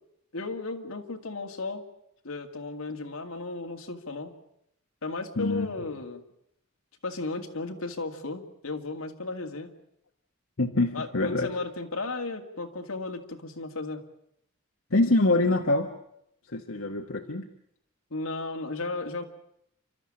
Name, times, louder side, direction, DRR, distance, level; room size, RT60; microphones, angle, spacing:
voice 1, 0.3-1.8 2.2-4.3 5.0-6.2 7.0-9.7 10.9-14.0 18.1-19.2, left 3 dB, 90° left, 4 dB, 2.2 m, -35 dB
voice 2, 5.4-5.7 10.6-11.5 14.9-15.9 16.5-17.5, left 2 dB, 70° left, 4 dB, 1.3 m, -25 dB
29.0 x 13.0 x 8.8 m, 0.76 s
head